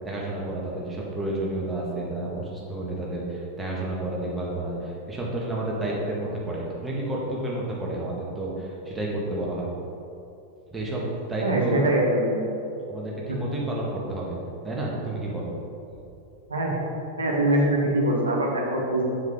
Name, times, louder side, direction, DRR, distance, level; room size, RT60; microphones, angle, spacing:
voice 1, 0.0-9.7 10.7-11.8 12.9-14.4 14.6-15.5, right 1 dB, 10° right, -5 dB, 1.8 m, -30 dB
voice 2, 11.4-12.4 13.3-13.4 16.5-16.8 17.2-19.0, right 1 dB, 75° right, -1 dB, 1.4 m, -23 dB
7.5 x 6.9 x 3.8 m, 2.8 s
figure-of-eight pair, 90°, 0 cm